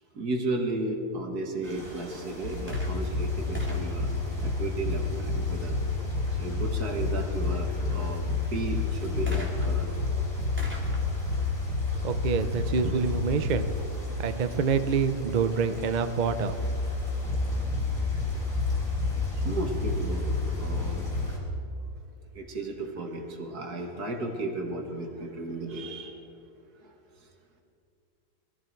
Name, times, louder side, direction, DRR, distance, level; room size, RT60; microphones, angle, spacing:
voice 1, 0.1-4.1 4.4-5.7 6.4-8.2 8.5-9.9 16.9-17.1 19.4-21.1 22.3-26.3 26.8-26.9 27.2-27.3, right 2 dB, 65° right, 3 dB, 2.3 m, -34 dB
sound 1, 1.6-21.4, equal, 20° left, 4.6 m, -45 dB
sound 2, 2.4-21.3, left 3 dB, 80° left, 2.3 m, -30 dB
sound 3, 2.7-5.2 9.3-12.9 13.7-13.8, equal, 5° right, 2.5 m, -46 dB
voice 2, 12.0-13.7 14.2-16.6, right 6 dB, 85° right, 10 dB, 0.4 m, -27 dB
21.5 x 14.0 x 4.6 m, 2.5 s
omnidirectional pair, 1.8 m